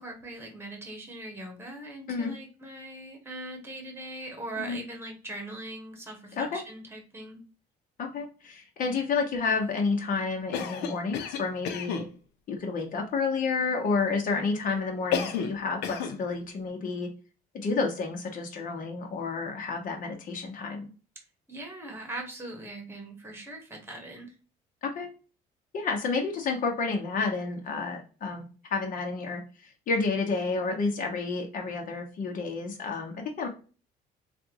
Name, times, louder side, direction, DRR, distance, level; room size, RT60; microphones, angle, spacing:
voice 1, 0.0-7.4 21.5-24.3, right 2 dB, 15° right, 2 dB, 1.4 m, -41 dB
voice 2, 8.0-12.1 12.5-17.1 17.5-20.9 24.8-25.1 25.7-29.4 29.9-33.5, left 4 dB, 55° left, 3 dB, 1.1 m, -30 dB
Cough, 10.5-12.1 15.1-15.6 15.8-16.2, left 7 dB, 85° left, 0.6 m, -31 dB
3.3 x 2.6 x 3.0 m, 0.35 s
cardioid pair, 110°, 17 cm